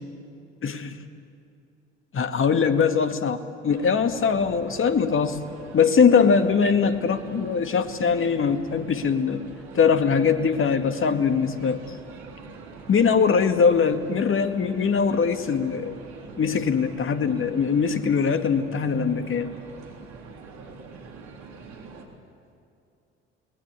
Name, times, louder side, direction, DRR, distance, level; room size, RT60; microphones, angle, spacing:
voice 1, 0.6-1.0 2.1-5.4 5.7-9.4 9.8-11.8 12.9-16.0 16.4-19.5, left 6 dB, 40° left, 8 dB, 2.0 m, -22 dB
sound 1, 3.7-22.1, right 4 dB, 65° right, 3.4 m, -44 dB
29.5 x 20.0 x 8.2 m, 2.6 s
hypercardioid pair, 55°, 31 cm